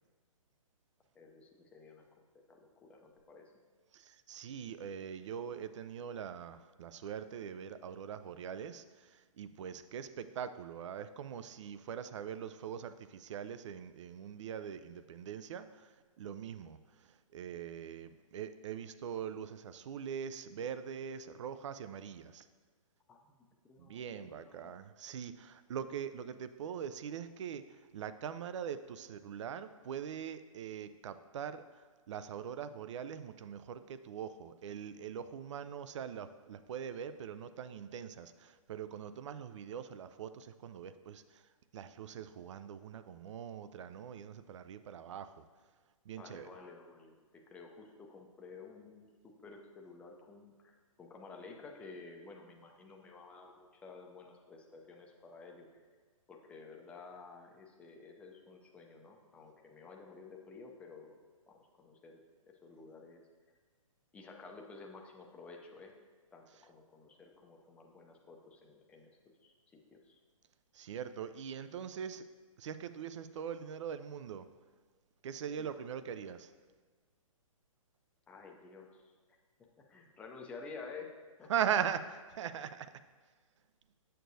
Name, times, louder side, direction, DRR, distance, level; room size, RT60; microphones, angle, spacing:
voice 1, 1.1-3.5 23.1-23.3 23.6-24.7 46.1-55.8 56.3-61.2 61.5-62.2 62.5-63.2 64.1-65.9 66.3-69.1 69.4-70.2 75.4-75.7 78.3-79.0 79.9-81.5, left 4 dB, 5° left, 1 dB, 0.5 m, -52 dB
voice 2, 3.9-15.9 16.2-16.8 17.3-22.5 23.8-31.6 32.1-41.4 41.7-45.4 46.1-46.5 70.7-72.2 72.6-74.5 75.2-76.5 81.5-82.9, right 8 dB, 60° right, 12 dB, 0.4 m, -41 dB
7.7 x 6.6 x 2.6 m, 1.5 s
hypercardioid pair, 140°, 18 cm